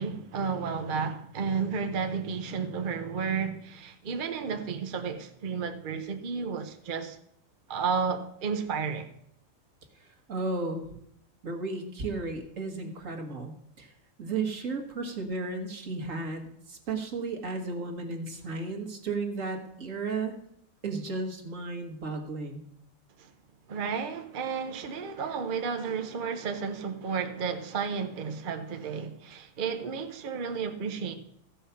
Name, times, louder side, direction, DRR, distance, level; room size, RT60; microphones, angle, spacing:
voice 1, 0.0-7.2 7.7-9.1 23.2-23.3 23.7-31.1, right 6 dB, 45° right, 0.8 m, -32 dB
voice 2, 10.0-10.9 11.4-13.9 14.2-20.3 20.8-22.6, right 3 dB, 70° right, 1.9 m, -34 dB
14.5 x 5.6 x 5.7 m
omnidirectional pair, 1.4 m